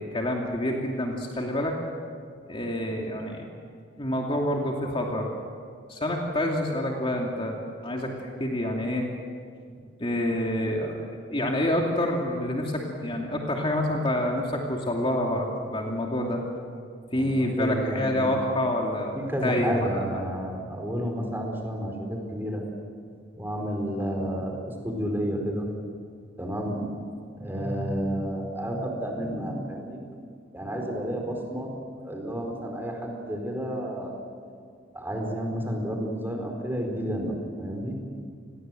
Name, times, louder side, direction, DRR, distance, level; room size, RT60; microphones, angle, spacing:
voice 1, 0.0-1.7 2.5-3.5 4.0-5.3 5.9-7.5 7.8-9.1 10.0-16.4 17.1-19.8, left 1 dB, 30° left, 0 dB, 2.6 m, -27 dB
voice 2, 17.1-18.3 19.1-22.6 23.4-25.7 26.4-30.0 30.5-31.7 32.0-34.1 34.9-38.0, equal, 10° right, 2 dB, 4.7 m, -31 dB
29.5 x 21.5 x 7.8 m, 2.1 s
head